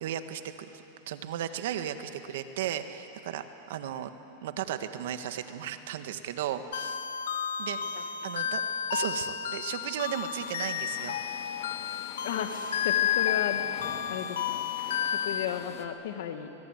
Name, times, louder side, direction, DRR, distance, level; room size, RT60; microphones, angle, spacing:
voice 1, 0.0-4.1 4.4-7.0 7.6-8.6 8.9-11.2, right 10 dB, 75° right, 9 dB, 1.7 m, -35 dB
sound 1, 6.7-15.5, left 9 dB, 90° left, 1.2 m, -31 dB
sound 2, 10.4-15.9, left 8 dB, 45° left, 2.6 m, -45 dB
voice 2, 12.8-13.7 14.1-14.7 15.1-16.5, left 10 dB, 70° left, 7 dB, 2.3 m, -34 dB
24.0 x 22.0 x 9.4 m, 3.0 s
supercardioid pair, 130°, 0 cm